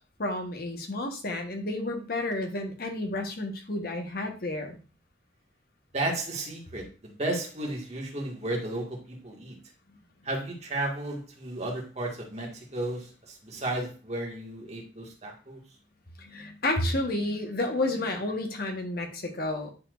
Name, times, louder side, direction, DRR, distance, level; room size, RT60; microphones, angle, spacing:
voice 1, 0.2-4.8 16.2-19.7, left 2 dB, 55° left, 4 dB, 1.2 m, -31 dB
voice 2, 5.9-9.6 10.3-13.1 13.4-15.6, right 1 dB, 40° right, -1 dB, 1.8 m, -33 dB
9.8 x 4.3 x 2.5 m, 0.34 s
head